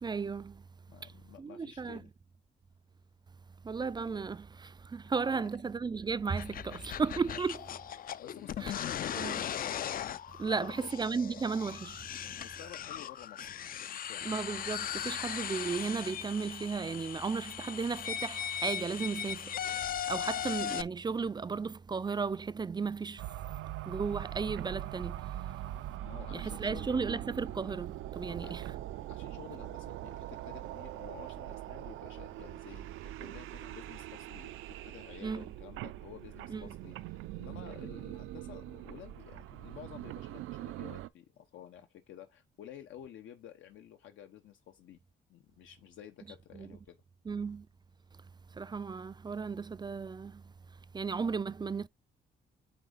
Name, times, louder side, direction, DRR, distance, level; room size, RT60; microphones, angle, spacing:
voice 1, 0.0-0.6 1.4-2.0 3.6-7.6 8.6-8.7 9.1-9.4 10.4-12.1 14.3-19.6 20.1-23.3 23.8-25.4 26.3-28.6 35.2-35.4 36.5-36.7 46.5-46.7 47.3-47.7 48.5-50.4 50.9-51.9, right 5 dB, 20° right, 0.3 m, -35 dB
voice 2, 0.9-2.1 5.3-5.5 7.3-7.4 8.2-9.0 10.4-10.9 12.2-14.3 25.5-25.6 26.0-27.2 28.3-28.6 29.1-34.6 34.8-45.0 45.3-47.0, left 10 dB, 75° left, 0.9 m, -52 dB
sound 1, 6.3-20.8, left 9 dB, 45° left, 0.4 m, -38 dB
sound 2, 23.2-41.1, right 14 dB, 90° right, 0.5 m, -42 dB
8.6 x 3.6 x 3.9 m
cardioid pair, 90°, 20 cm